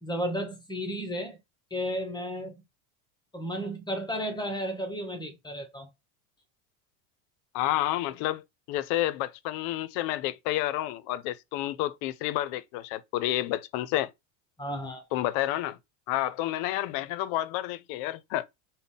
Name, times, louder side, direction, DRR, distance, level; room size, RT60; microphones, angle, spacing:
voice 1, 0.0-1.4 1.7-2.6 3.3-5.9 14.6-15.0, equal, 10° left, 0.6 m, -33 dB
voice 2, 7.5-14.1 15.1-15.8 16.1-18.5, left 14 dB, 55° left, 0.5 m, -30 dB
3.8 x 2.1 x 3.6 m
supercardioid pair, 115°, 42 cm